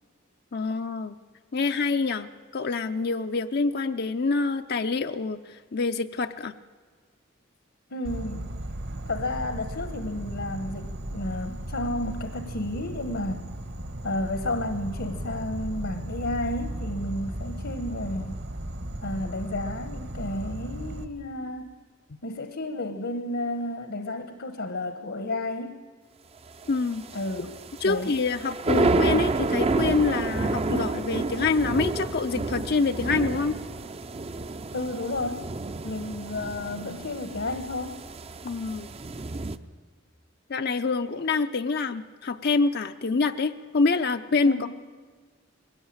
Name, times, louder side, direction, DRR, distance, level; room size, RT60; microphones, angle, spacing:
voice 1, 0.5-1.2 1.5-6.5 26.7-27.0 27.8-33.6 38.4-38.9 40.5-44.7, left 4 dB, 50° left, 7 dB, 0.5 m, -26 dB
voice 2, 7.9-8.5 9.1-13.4 14.0-18.4 19.0-21.7 22.2-25.7 27.1-27.6 27.8-28.2 34.7-35.4 35.8-38.0 44.4-44.7, left 1 dB, 70° left, 8 dB, 1.2 m, -32 dB
Insect, 8.0-21.0, right 1 dB, 55° right, 1.4 m, -36 dB
sound 1, 26.5-39.6, right 2 dB, 30° right, 0.6 m, -30 dB
21.0 x 17.0 x 8.7 m, 1.5 s
head